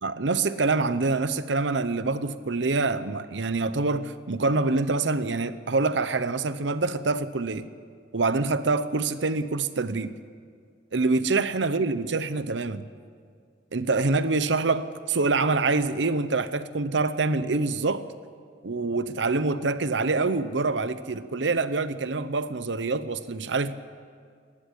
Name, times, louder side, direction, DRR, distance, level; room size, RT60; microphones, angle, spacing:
voice 1, 0.0-7.7 8.1-10.2 10.9-12.9 13.7-18.1 18.6-23.7, right 3 dB, 80° right, 13 dB, 0.8 m, -26 dB
18.5 x 15.5 x 10.0 m, 2.1 s
head